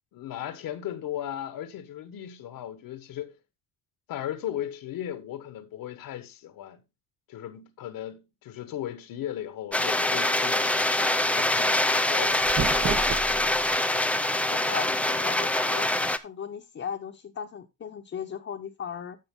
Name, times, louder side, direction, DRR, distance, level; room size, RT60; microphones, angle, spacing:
voice 1, 0.1-3.3 4.1-6.8 7.3-13.5 13.9-14.1, left 11 dB, 55° left, 1.3 m, -37 dB
sound 1, 9.7-16.2, left 1 dB, 5° left, 0.5 m, -24 dB
sound 2, 12.2-13.8, right 7 dB, 30° right, 0.9 m, -32 dB
voice 2, 14.5-15.9 16.2-19.2, left 7 dB, 30° left, 1.0 m, -37 dB
13.5 x 5.0 x 3.6 m
supercardioid pair, 100°, 41 cm